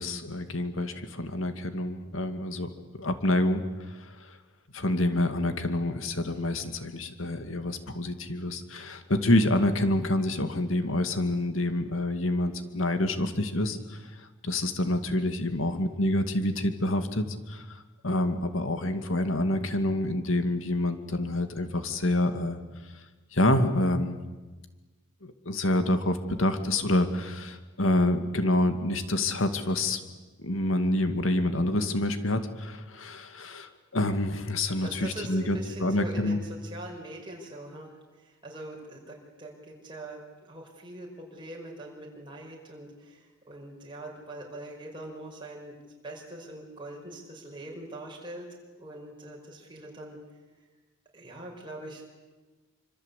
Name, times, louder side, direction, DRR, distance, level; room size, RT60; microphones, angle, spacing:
voice 1, 0.0-2.7 3.0-4.4 4.7-17.8 18.0-22.6 23.3-24.2 25.2-30.0 30.4-36.4, left 1 dB, 75° left, 8 dB, 2.3 m, -27 dB
voice 2, 34.8-45.7 46.0-50.2 51.1-52.0, right 1 dB, 25° right, -1 dB, 5.4 m, -42 dB
27.0 x 26.0 x 8.4 m, 1.2 s
head